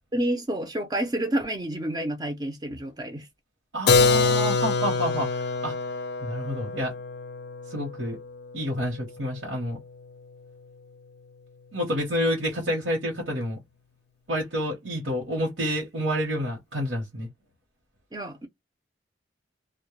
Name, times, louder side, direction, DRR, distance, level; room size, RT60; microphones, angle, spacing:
voice 1, 0.1-3.3 18.1-18.5, right 1 dB, 20° right, 0.4 m, -29 dB
voice 2, 3.7-5.7 6.2-6.9 7.7-8.2 8.5-9.8 11.7-13.6 14.3-17.3, equal, 75° right, 0.9 m, -29 dB
Keyboard (musical), 3.9-9.5, left 4 dB, 55° left, 0.4 m, -25 dB
2.1 x 2.1 x 3.0 m
head